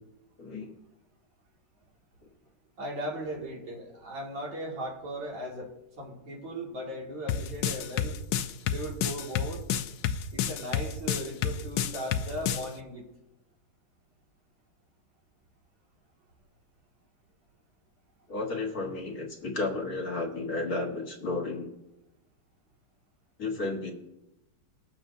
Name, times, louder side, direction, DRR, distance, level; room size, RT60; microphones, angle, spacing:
voice 1, 0.4-0.7 18.3-21.7 23.4-23.9, left 3 dB, 50° left, 1 dB, 1.9 m, -32 dB
voice 2, 2.8-8.2 8.6-9.6 10.3-13.1, equal, 85° right, -3 dB, 2.9 m, -38 dB
sound 1, 7.3-12.7, left 9 dB, 75° left, 1.2 m, -29 dB
20.5 x 7.3 x 2.7 m, 0.93 s
omnidirectional pair, 2.0 m